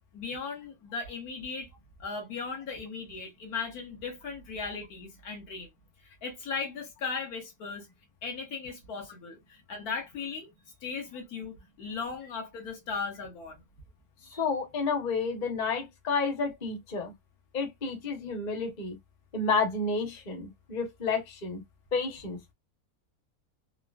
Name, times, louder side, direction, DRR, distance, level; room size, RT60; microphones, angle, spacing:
voice 1, 0.1-1.7 2.0-5.7 6.0-7.9 8.2-10.5 10.8-13.6 14.3-14.4, left 5 dB, 85° left, 1.6 m, -37 dB
voice 2, 14.3-17.1 17.5-19.0 19.3-21.6 21.9-22.5, left 4 dB, 35° left, 0.8 m, -30 dB
3.9 x 2.1 x 2.3 m
omnidirectional pair, 1.5 m